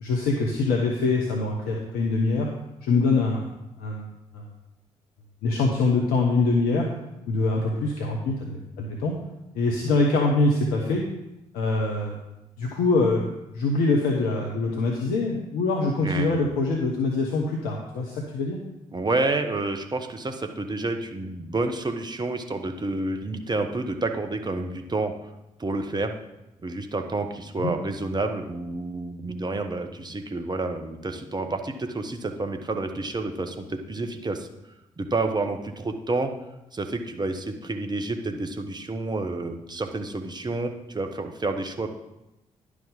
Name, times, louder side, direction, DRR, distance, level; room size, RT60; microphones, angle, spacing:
voice 1, 0.0-2.5 2.8-3.5 3.8-4.5 5.4-6.9 7.3-9.2 9.5-11.0 11.5-12.2 12.6-18.6 27.6-27.7, left 3 dB, 60° left, 0 dB, 1.0 m, -24 dB
voice 2, 16.0-16.5 18.9-25.1 25.6-26.2 26.6-34.5 35.0-36.3 36.7-41.9, right 2 dB, 25° right, 5 dB, 1.1 m, -29 dB
10.5 x 4.9 x 5.3 m, 0.93 s
figure-of-eight pair, 40°, 17 cm